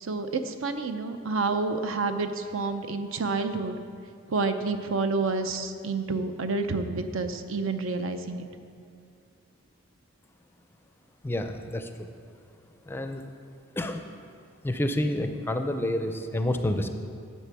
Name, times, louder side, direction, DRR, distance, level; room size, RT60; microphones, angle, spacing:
voice 1, 0.0-3.7 4.3-8.5, right 3 dB, 70° right, 8 dB, 0.7 m, -29 dB
voice 2, 11.2-12.1 12.9-13.2 13.8-14.0 14.6-16.9, left 1 dB, 10° left, 7 dB, 0.5 m, -29 dB
10.5 x 7.3 x 6.0 m, 2.4 s
head